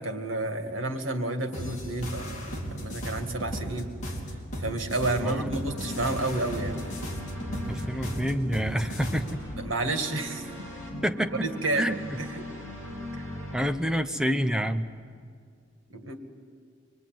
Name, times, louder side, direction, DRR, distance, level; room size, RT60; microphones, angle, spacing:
voice 1, 0.0-3.9 4.6-6.9 9.6-10.4 11.4-11.8 12.2-12.5 13.1-13.2 15.9-16.2, right 2 dB, 80° right, 5 dB, 2.3 m, -30 dB
sound 1, 1.5-9.4, equal, 35° left, 3.7 m, -36 dB
voice 2, 5.2-5.5 7.7-9.4 11.0-11.5 11.8-12.2 13.5-14.9, equal, 5° right, 6 dB, 0.8 m, -28 dB
sound 2, 5.4-13.6, left 1 dB, 15° left, 7.1 m, -39 dB
26.0 x 22.5 x 9.3 m, 2.2 s
head